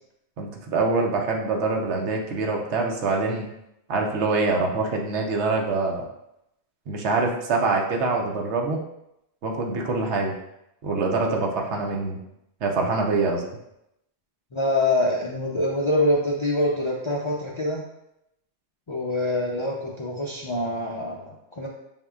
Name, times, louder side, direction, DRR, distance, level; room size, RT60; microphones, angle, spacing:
voice 1, 0.4-3.5 3.9-6.0 6.9-8.8 9.4-10.4 10.8-12.2 12.6-13.4, right 3 dB, 75° right, 1 dB, 1.1 m, -25 dB
voice 2, 14.5-17.8 18.9-21.7, left 1 dB, 45° left, -3 dB, 0.4 m, -25 dB
5.9 x 3.6 x 2.3 m, 0.83 s
omnidirectional pair, 1.2 m